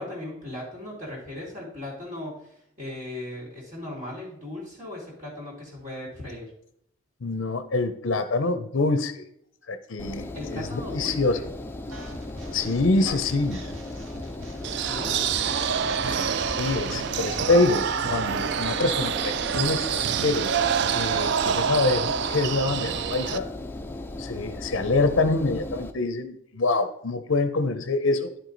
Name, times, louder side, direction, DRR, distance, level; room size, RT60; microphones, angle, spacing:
voice 1, 0.0-6.5 10.3-11.5 14.7-15.4, left 1 dB, 35° right, -5 dB, 2.6 m, -38 dB
voice 2, 7.2-9.3 9.7-11.4 12.5-13.6 16.1-20.6 20.9-23.5 24.2-28.3, left 3 dB, 60° left, 10 dB, 0.6 m, -25 dB
Engine, 10.0-25.9, left 1 dB, 10° left, 0.4 m, -37 dB
sound 1, 11.9-17.0, right 1 dB, 75° right, 1.4 m, -42 dB
sound 2, 14.6-23.4, right 7 dB, 55° right, 0.3 m, -27 dB
10.5 x 4.7 x 3.9 m, 0.74 s
head